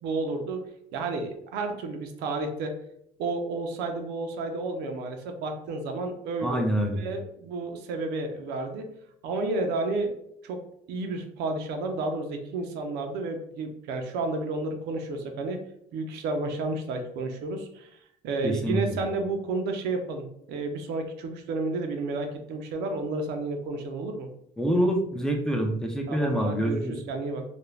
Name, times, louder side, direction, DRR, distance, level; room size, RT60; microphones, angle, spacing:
voice 1, 0.0-0.6 0.9-2.7 3.2-6.6 7.0-8.9 9.2-10.1 10.4-10.6 10.9-15.6 15.9-18.0 18.2-24.3 26.1-27.4, right 3 dB, 85° right, 5 dB, 0.5 m, -31 dB
voice 2, 6.4-7.0 18.4-19.0 24.6-27.0, right 1 dB, 5° left, 2 dB, 0.4 m, -26 dB
2.4 x 2.2 x 3.1 m, 0.74 s
cardioid pair, 110°, 17 cm